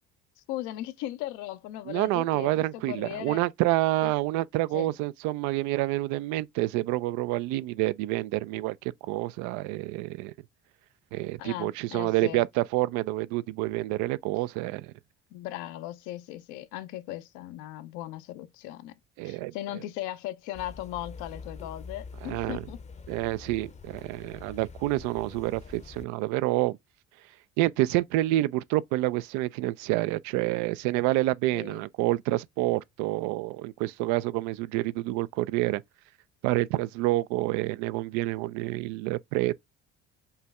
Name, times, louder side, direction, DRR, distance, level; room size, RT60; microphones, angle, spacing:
voice 1, 0.4-3.4 4.0-4.1 4.7-4.9 11.4-12.4 15.3-18.9 19.2-22.8 31.5-31.8, left 14 dB, 85° left, 0.7 m, -38 dB
voice 2, 1.9-10.3 11.1-14.9 19.2-19.5 22.2-22.6 23.1-26.8 27.6-35.8 36.4-39.6, right 18 dB, 80° right, 0.4 m, -28 dB
sound 1, 20.5-26.1, left 4 dB, 25° left, 0.6 m, -45 dB
5.6 x 2.2 x 3.5 m
supercardioid pair, 85°, 29 cm